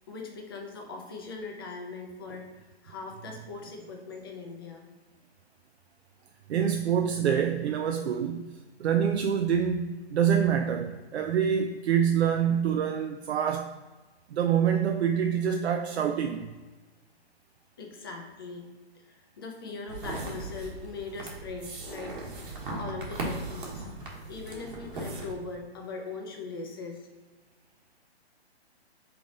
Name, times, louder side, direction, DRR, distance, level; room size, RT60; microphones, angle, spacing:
voice 1, 0.1-4.9 17.8-18.7 18.9-22.5 22.8-23.9 24.3-27.1, left 4 dB, 20° left, 0.5 m, -40 dB
voice 2, 6.5-8.5 8.8-13.7 14.3-16.5, right 8 dB, 85° right, 0.5 m, -26 dB
sound 1, 19.9-25.3, right 2 dB, 50° right, 1.3 m, -38 dB
3.8 x 3.4 x 3.8 m
hypercardioid pair, 165°, 32 cm